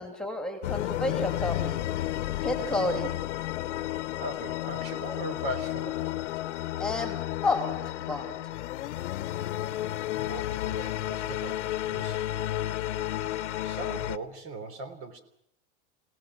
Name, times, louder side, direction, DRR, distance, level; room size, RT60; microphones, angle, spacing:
voice 1, 0.0-1.8 2.4-3.1 6.8-8.3, left 2 dB, ahead, 5 dB, 2.8 m, -31 dB
sound 1, 0.6-14.2, left 14 dB, 85° left, 1.2 m, -32 dB
voice 2, 4.2-6.2 10.3-12.2 13.6-15.2, right 2 dB, 40° right, 11 dB, 3.4 m, -39 dB
29.5 x 18.0 x 6.3 m, 0.74 s
supercardioid pair, 145°, 34 cm